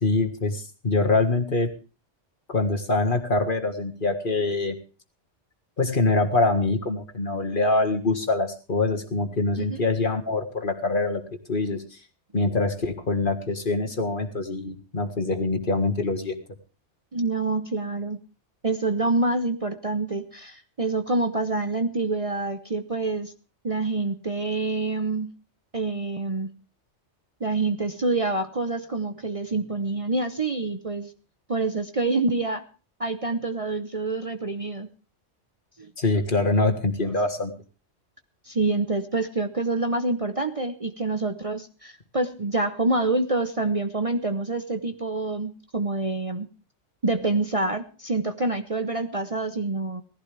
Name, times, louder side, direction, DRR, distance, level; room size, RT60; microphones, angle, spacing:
voice 1, 0.0-1.7 2.5-4.8 5.8-11.2 11.5-12.0 12.3-16.4 36.0-37.5, left 3 dB, 45° left, 4 dB, 1.9 m, -24 dB
voice 2, 17.1-18.2 18.6-23.3 23.6-25.3 25.7-26.5 27.4-31.1 31.5-32.6 33.0-34.9 35.8-35.9 38.4-46.5 47.0-50.0, right 2 dB, 30° right, 7 dB, 0.9 m, -26 dB
19.0 x 15.0 x 3.4 m, 0.35 s
omnidirectional pair, 1.2 m